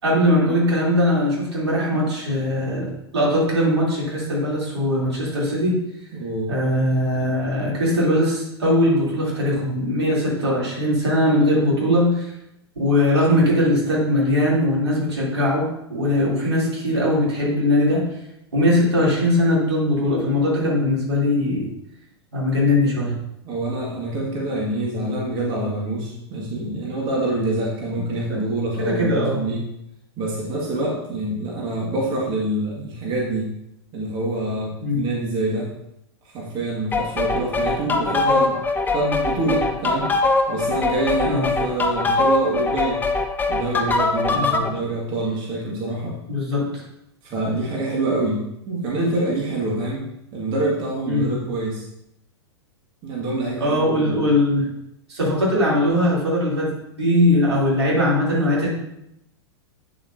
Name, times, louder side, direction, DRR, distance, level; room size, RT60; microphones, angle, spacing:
voice 1, 0.0-5.8 6.5-12.3 12.7-18.1 18.5-21.7 22.3-23.2 28.3-28.4 28.8-29.5 34.8-35.1 41.2-41.5 44.3-44.6 46.3-46.8 51.1-51.4 53.6-54.7 55.1-56.7 57.0-58.7, left 1 dB, 80° right, -5 dB, 3.4 m, -20 dB
voice 2, 6.1-6.6 23.4-29.7 30.2-33.5 33.9-35.7 36.2-38.6 38.8-40.1 40.5-43.1 43.5-46.1 47.2-50.0 50.3-51.9 53.0-54.2, right 2 dB, 35° right, -3 dB, 2.1 m, -26 dB
sound 1, 36.9-44.7, left 3 dB, 15° left, 0.8 m, -22 dB
8.9 x 7.3 x 2.8 m, 0.82 s
figure-of-eight pair, 100°, 14 cm